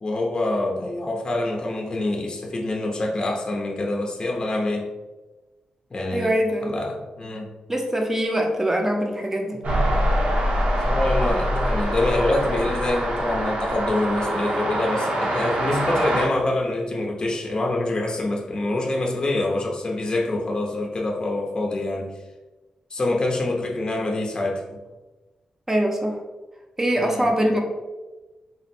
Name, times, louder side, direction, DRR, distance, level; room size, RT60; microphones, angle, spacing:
voice 1, 0.0-4.9 5.9-6.3 6.6-7.5 10.8-22.1 22.9-24.8 27.0-27.3, left 2 dB, 35° left, 0 dB, 0.6 m, -25 dB
voice 2, 6.1-6.7 7.7-9.6 25.7-26.2 26.8-27.6, equal, 15° right, 2 dB, 0.7 m, -23 dB
sound 1, 9.6-16.3, equal, 65° right, 0.9 m, -24 dB
4.0 x 2.1 x 4.2 m, 1.2 s
wide cardioid pair, 105°, 2 cm